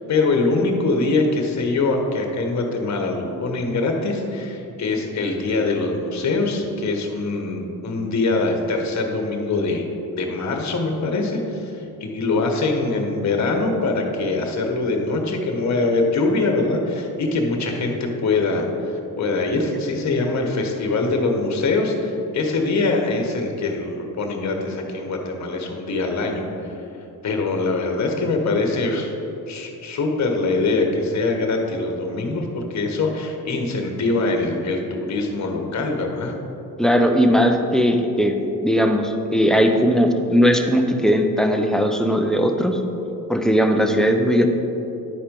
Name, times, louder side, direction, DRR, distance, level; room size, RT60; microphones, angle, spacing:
voice 1, 0.1-9.8 10.1-26.7 27.2-29.1 29.5-36.3, left 3 dB, 50° left, 2 dB, 1.3 m, -23 dB
voice 2, 36.8-42.8 43.3-44.5, equal, ahead, 4 dB, 0.7 m, -18 dB
10.5 x 4.3 x 5.3 m, 2.9 s
cardioid pair, 90°, 36 cm